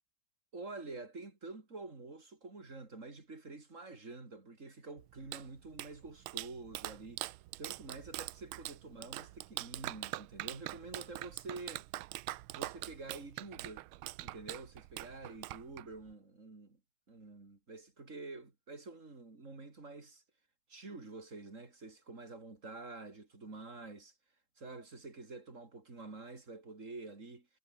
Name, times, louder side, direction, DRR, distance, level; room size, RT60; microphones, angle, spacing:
voice 1, 0.5-7.2 7.6-11.9 12.5-13.9 14.2-16.8 17.1-20.2 20.7-24.1 24.6-27.5, right 3 dB, 35° right, 3.7 m, -48 dB
Clapping, 5.0-16.1, right 16 dB, 90° right, 1.5 m, -44 dB
omnidirectional pair, 2.2 m